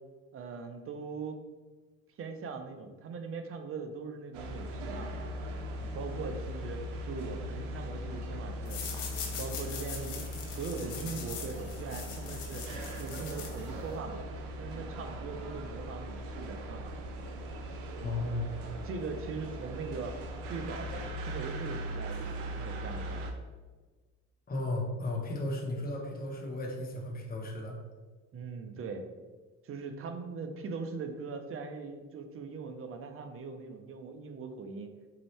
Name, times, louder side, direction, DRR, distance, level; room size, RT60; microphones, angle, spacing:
voice 1, 0.3-1.4 2.2-5.2 5.8-8.8 9.2-12.7 13.0-14.2 14.6-16.9 18.0-18.2 18.8-20.2 20.5-23.3 28.3-29.1 29.6-34.9, right 4 dB, 40° right, 6 dB, 0.6 m, -41 dB
sound 1, 4.3-23.3, equal, 90° right, 0.6 m, -39 dB
sound 2, 8.7-14.0, left 6 dB, 85° left, 0.9 m, -42 dB
voice 2, 18.0-18.5 24.5-27.8, left 2 dB, 25° left, 0 dB, 0.9 m, -34 dB
4.0 x 2.7 x 3.2 m, 1.3 s
supercardioid pair, 80°, 36 cm